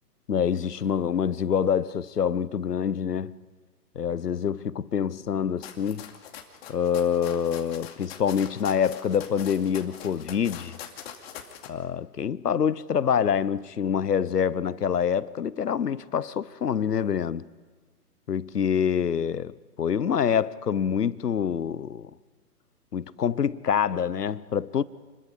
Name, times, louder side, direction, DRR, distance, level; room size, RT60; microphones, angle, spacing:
voice 1, 0.3-3.4 4.0-6.1 6.7-10.8 11.7-17.4 18.3-22.1 22.9-24.8, left 7 dB, 75° left, 1.0 m, -26 dB
sound 1, 5.6-11.7, left 9 dB, 40° left, 2.6 m, -43 dB
29.0 x 22.0 x 5.3 m
figure-of-eight pair, 135°, 48 cm